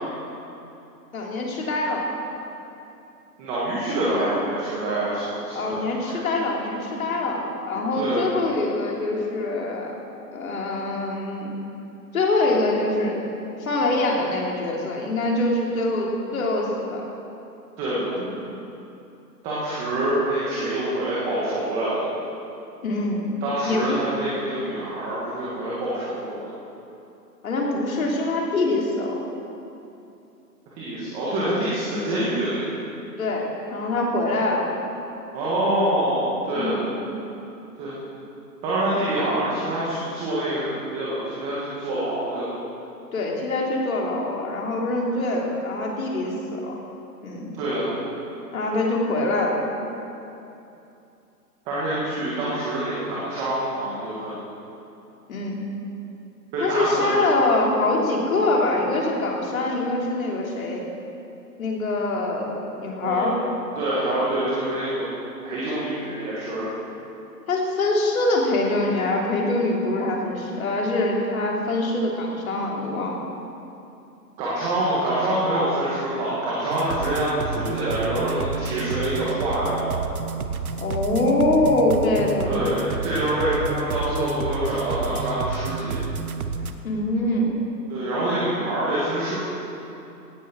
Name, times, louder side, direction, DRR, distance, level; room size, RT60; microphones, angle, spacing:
voice 1, 1.1-2.1 3.8-4.0 5.5-9.9 10.3-11.5 12.1-13.2 13.6-17.0 18.3-18.4 22.8-23.4 23.6-24.0 27.4-29.1 33.2-34.7 36.5-37.0 43.1-46.7 47.2-47.5 48.5-49.6 55.3-55.6 56.6-60.8 61.6-63.4 64.0-64.2 67.5-73.2 80.8-82.7 86.8-87.5, left 2 dB, 55° left, -2 dB, 3.4 m, -24 dB
voice 2, 3.4-6.2 8.0-8.3 17.8-18.1 19.4-22.1 23.4-26.5 30.7-32.6 35.3-36.8 37.8-38.0 38.6-42.6 47.6-47.9 51.6-54.3 56.5-57.2 63.0-63.4 63.7-65.1 65.4-66.7 74.4-80.0 82.4-86.0 87.9-89.4, right 1 dB, 10° right, -8 dB, 1.7 m, -26 dB
sound 1, 76.7-86.7, right 5 dB, 60° right, 1.0 m, -30 dB
17.5 x 9.4 x 6.2 m, 2.8 s
hypercardioid pair, 165°, 50 cm